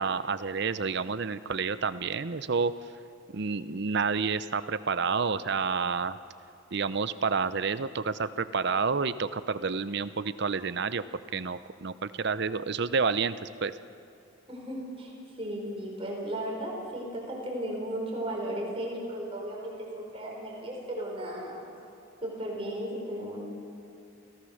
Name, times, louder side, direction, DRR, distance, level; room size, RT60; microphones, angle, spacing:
voice 1, 0.0-2.7 3.3-6.2 6.7-11.0 11.3-13.7, right 5 dB, 55° right, 14 dB, 0.6 m, -29 dB
voice 2, 14.5-15.1 15.4-21.7 22.2-23.4, right 1 dB, 30° right, -2 dB, 4.5 m, -35 dB
29.5 x 16.5 x 6.5 m, 2.5 s
head